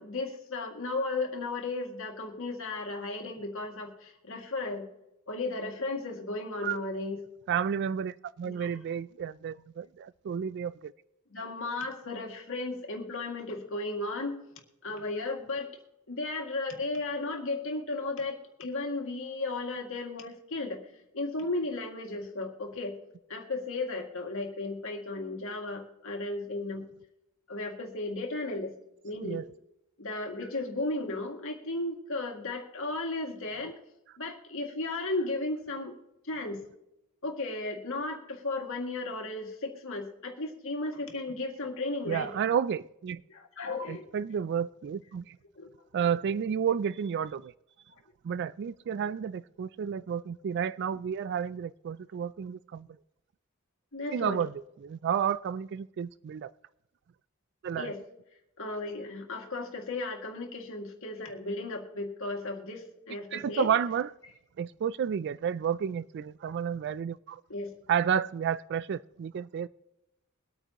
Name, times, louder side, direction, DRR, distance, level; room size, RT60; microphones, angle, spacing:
voice 1, 0.0-4.9 5.3-7.2 8.4-8.7 11.3-14.4 14.8-15.7 16.1-20.9 21.1-23.0 23.3-26.9 27.5-28.7 29.0-29.4 30.0-33.8 34.2-35.9 36.2-36.6 37.2-42.3 43.3-44.1 45.6-45.7 53.9-54.4 57.7-58.0 58.6-63.7 67.5-67.7, left 2 dB, 65° left, 2 dB, 2.2 m, -35 dB
voice 2, 7.5-10.9 29.2-29.4 42.1-43.2 43.9-45.4 45.9-47.5 48.2-52.9 54.1-54.5 54.8-56.5 57.6-57.9 63.3-64.1 64.6-67.4 67.9-69.7, right 8 dB, 55° right, 18 dB, 0.3 m, -31 dB
23.0 x 8.9 x 3.0 m, 0.90 s
head